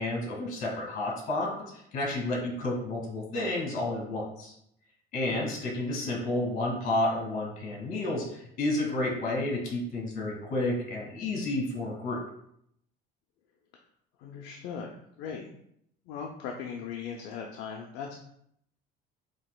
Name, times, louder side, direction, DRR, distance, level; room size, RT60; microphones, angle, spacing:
voice 1, 0.0-1.5 1.7-4.5 5.1-12.2, left 2 dB, 45° left, -2 dB, 1.8 m, -31 dB
voice 2, 14.2-15.5 16.1-18.1, left 6 dB, 70° left, 1 dB, 0.5 m, -39 dB
7.2 x 2.9 x 2.2 m, 0.72 s
cardioid pair, 160°, 19 cm